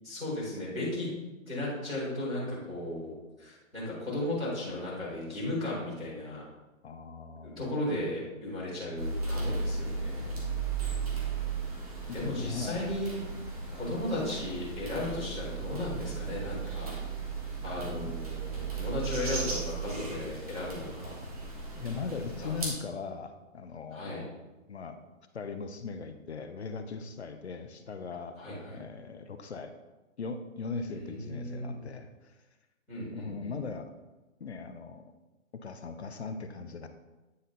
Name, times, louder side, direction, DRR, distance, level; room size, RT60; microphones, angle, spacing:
voice 1, 0.0-1.1 1.4-3.1 3.4-6.4 7.4-10.4 12.1-13.1 13.7-16.9 17.6-21.2 22.4-22.5 23.9-24.2 28.4-28.8 30.9-31.8 32.9-33.5, left 1 dB, ahead, -30 dB, 0.7 m, -35 dB
voice 2, 6.8-7.8 12.1-12.8 17.8-18.1 21.7-24.3 24.7-25.0 25.3-28.4 28.7-29.7 30.2-32.3 33.1-33.9 34.4-35.1 35.5-36.9, left 4 dB, 55° left, 8 dB, 0.7 m, -39 dB
sound 1, 9.0-22.7, right 4 dB, 25° right, 1.3 m, -36 dB
9.5 x 4.2 x 3.9 m, 1.1 s
hypercardioid pair, 180°, 40 cm